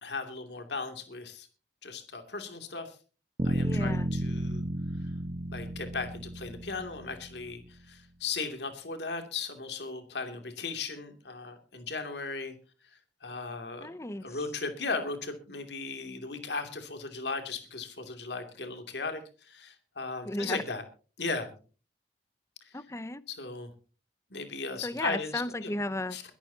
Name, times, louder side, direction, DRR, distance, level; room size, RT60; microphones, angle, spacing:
voice 1, 0.0-1.5 1.8-3.0 3.4-4.6 5.0-5.1 5.5-12.5 12.8-13.9 14.2-20.8 21.2-21.6 22.6-22.8 23.3-23.7 24.3-25.7 26.1-26.2, left 4 dB, 70° left, 6 dB, 2.6 m, -37 dB
sound 1, 3.4-7.4, right 1 dB, 40° right, 1.2 m, -32 dB
voice 2, 3.6-4.1 13.8-14.4 20.2-20.6 22.7-23.2 24.8-26.2, left 1 dB, 15° left, 16 dB, 0.6 m, -34 dB
22.5 x 13.0 x 2.8 m, 0.37 s
head